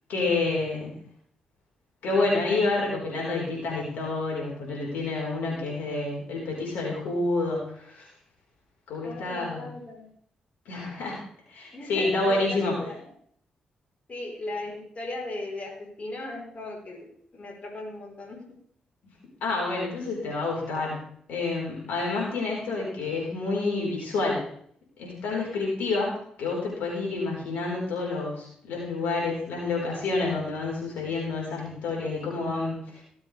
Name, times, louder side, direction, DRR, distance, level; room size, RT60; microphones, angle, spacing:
voice 1, 0.1-0.9 2.0-8.0 8.9-9.6 10.7-11.2 11.5-12.7 19.4-21.0 21.3-24.4 25.0-26.1 26.4-33.0, left 3 dB, 80° left, -2 dB, 4.2 m, -28 dB
voice 2, 9.0-10.1 11.7-13.1 14.1-17.1 17.3-18.4, left 2 dB, 50° left, -1 dB, 3.8 m, -37 dB
18.0 x 7.6 x 3.3 m, 0.62 s
supercardioid pair, 50°, 3 cm